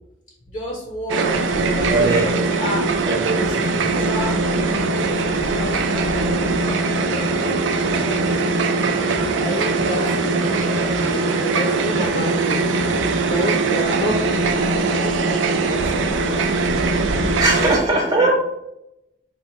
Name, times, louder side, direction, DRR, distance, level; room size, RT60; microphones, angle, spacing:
voice 1, 0.5-2.9 3.4-4.3 5.0-8.6 9.0-12.6 12.9-16.0 17.6-18.3, left 1 dB, 40° left, -1 dB, 0.7 m, -30 dB
sound 1, 1.1-17.8, right 3 dB, 80° right, 0.5 m, -21 dB
voice 2, 1.9-2.6 3.0-4.3 17.4-18.3, right 2 dB, 20° right, -3 dB, 0.5 m, -21 dB
4.3 x 2.2 x 4.3 m, 0.85 s
head